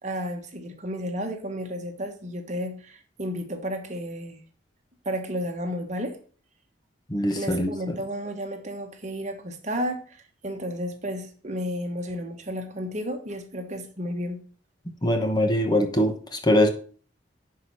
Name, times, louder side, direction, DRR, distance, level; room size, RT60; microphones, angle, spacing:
voice 1, 0.0-4.4 5.0-6.2 7.4-14.4, equal, 40° right, 1.4 m, -32 dB
voice 2, 7.1-8.0 15.0-16.7, left 1 dB, 20° left, 1.1 m, -23 dB
10.5 x 4.8 x 5.6 m
head